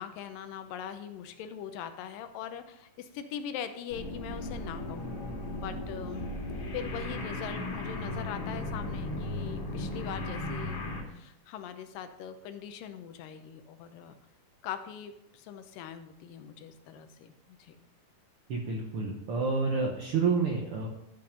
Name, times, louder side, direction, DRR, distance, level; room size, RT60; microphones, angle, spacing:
voice 1, 0.0-5.1 5.6-6.2 6.7-10.8 11.1-14.2 14.6-17.8, left 9 dB, 80° left, 9 dB, 2.4 m, -41 dB
sound 1, 3.9-11.0, left 2 dB, 65° left, 3.3 m, -36 dB
voice 2, 18.5-20.9, right 4 dB, 70° right, 0 dB, 1.3 m, -29 dB
12.5 x 5.8 x 5.1 m, 0.83 s
omnidirectional pair, 3.9 m